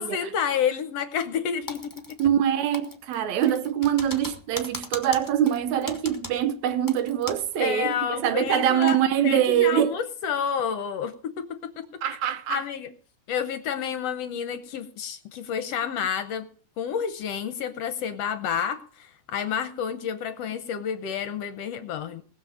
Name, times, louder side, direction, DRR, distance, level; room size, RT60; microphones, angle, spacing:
voice 1, 0.0-1.9 7.6-9.0 9.2-12.0 12.5-12.9 13.3-16.5 16.8-22.2, left 8 dB, 70° left, 1.7 m, -29 dB
Typing, 1.7-2.5 2.7-7.6 7.8-7.9 8.4-9.0, left 2 dB, 10° left, 1.0 m, -39 dB
voice 2, 2.2-10.0 12.0-12.6, right 10 dB, 75° right, 2.2 m, -24 dB
19.5 x 7.1 x 6.4 m
omnidirectional pair, 3.4 m